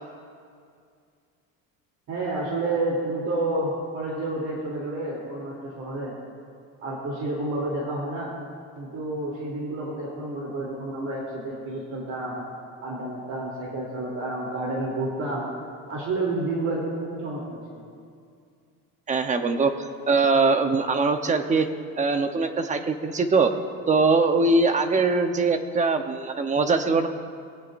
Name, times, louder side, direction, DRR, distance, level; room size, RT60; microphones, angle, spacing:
voice 1, 2.1-6.1 6.8-8.3 8.7-12.5 12.8-15.5 15.9-17.8, right 2 dB, 50° right, -4 dB, 3.2 m, -30 dB
voice 2, 19.1-19.7 20.1-21.7 22.0-23.5 23.9-27.1, right 3 dB, 20° right, 7 dB, 0.9 m, -22 dB
22.5 x 17.0 x 2.6 m, 2.3 s
cardioid pair, 150°, 35 cm